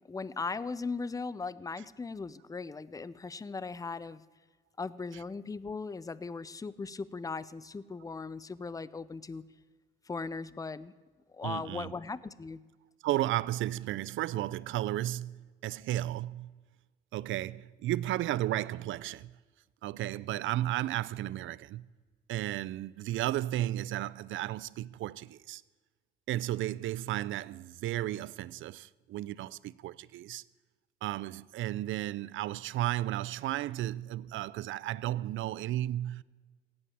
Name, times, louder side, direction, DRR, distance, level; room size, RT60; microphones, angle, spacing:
voice 1, 0.0-4.2 4.8-9.4 10.1-10.9 11.3-12.6, left 4 dB, 15° left, 0.6 m, -38 dB
voice 2, 11.4-11.9 13.0-16.5 17.1-19.3 19.8-21.9 22.3-25.6 26.3-30.4 31.0-36.2, right 14 dB, 75° right, 0.5 m, -34 dB
16.5 x 8.7 x 8.3 m
cardioid pair, 90°, 20 cm